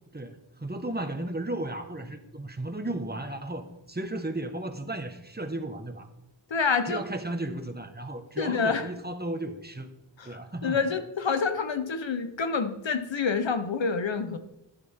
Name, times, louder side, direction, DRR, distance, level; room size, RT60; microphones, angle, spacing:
voice 1, 0.1-6.1 6.8-9.9 10.2-10.8, right 1 dB, 20° right, 6 dB, 1.4 m, -34 dB
voice 2, 6.5-7.0 8.4-8.9 10.2-14.4, left 5 dB, 75° left, 9 dB, 1.1 m, -27 dB
13.0 x 11.0 x 3.7 m, 0.90 s
wide cardioid pair, 50°, 46 cm